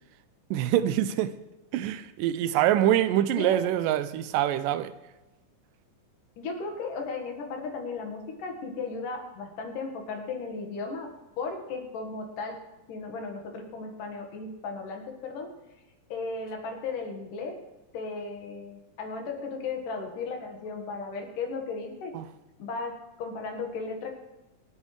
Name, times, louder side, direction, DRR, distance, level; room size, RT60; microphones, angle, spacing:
voice 1, 0.5-1.4 1.7-4.9 22.1-22.3, right 12 dB, 85° right, 2.2 m, -25 dB
voice 2, 3.1-3.6 6.4-11.1 11.4-12.6 12.9-15.5 16.1-17.6 17.9-22.1 22.6-22.9 23.2-24.2, left 4 dB, 75° left, 3.2 m, -35 dB
26.0 x 8.7 x 3.3 m
omnidirectional pair, 3.8 m